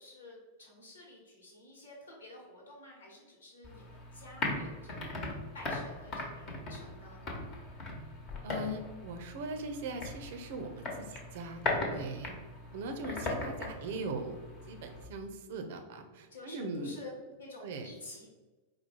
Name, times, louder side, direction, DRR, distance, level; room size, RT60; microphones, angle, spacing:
voice 1, 0.0-7.2 13.5-14.0 16.3-17.1 17.4-18.3, left 2 dB, 70° left, -2 dB, 1.2 m, -51 dB
sound 1, 3.6-15.0, left 2 dB, 35° left, 1.1 m, -39 dB
voice 2, 8.4-12.4 12.7-14.4 14.6-17.0 17.6-17.9, right 2 dB, 55° right, 5 dB, 0.6 m, -40 dB
4.7 x 2.2 x 4.4 m, 1.2 s
figure-of-eight pair, 95°, 0 cm